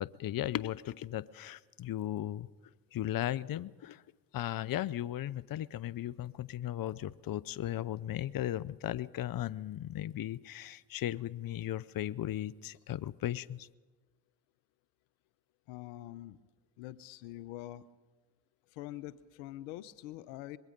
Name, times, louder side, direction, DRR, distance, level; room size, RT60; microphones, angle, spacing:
voice 1, 0.0-2.5 2.9-4.0 4.3-13.7, left 12 dB, 45° left, 19 dB, 0.8 m, -36 dB
voice 2, 15.7-16.4 16.8-17.8 18.7-20.6, left 15 dB, 85° left, 16 dB, 0.9 m, -44 dB
24.5 x 21.5 x 5.3 m, 1.2 s
hypercardioid pair, 55°, 46 cm